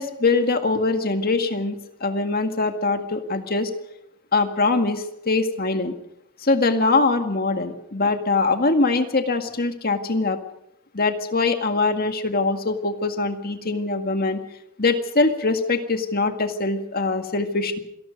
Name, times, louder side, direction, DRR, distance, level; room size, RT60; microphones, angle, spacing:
voice 1, 0.0-3.7 4.3-5.9 6.4-10.4 10.9-14.4 14.8-17.8, left 3 dB, 45° left, 6 dB, 2.0 m, -22 dB
26.5 x 18.5 x 5.3 m, 0.79 s
head